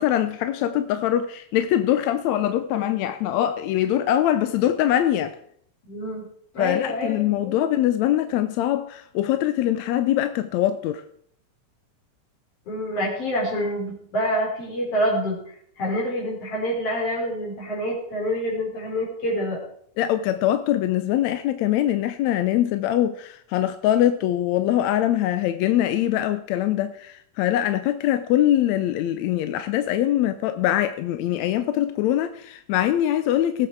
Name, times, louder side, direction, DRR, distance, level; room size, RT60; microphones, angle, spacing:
voice 1, 0.0-5.4 6.6-11.0 20.0-33.7, left 12 dB, 80° left, 1.8 m, -23 dB
voice 2, 5.8-6.3 6.5-7.7 12.7-15.4 15.8-19.6, equal, 50° left, 5.0 m, -27 dB
18.5 x 8.0 x 4.6 m
omnidirectional pair, 3.6 m